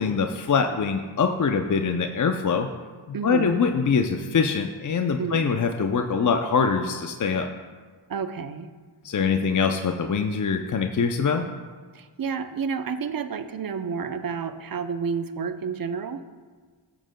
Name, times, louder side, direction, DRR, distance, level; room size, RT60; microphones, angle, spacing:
voice 1, 0.0-2.7 3.1-7.5 9.0-11.5, left 5 dB, 40° left, 5 dB, 0.5 m, -23 dB
voice 2, 3.1-3.6 5.2-5.4 8.1-8.7 11.9-16.2, right 6 dB, 45° right, 10 dB, 0.6 m, -30 dB
12.0 x 7.4 x 2.2 m, 1.5 s
cardioid pair, 45°, 50 cm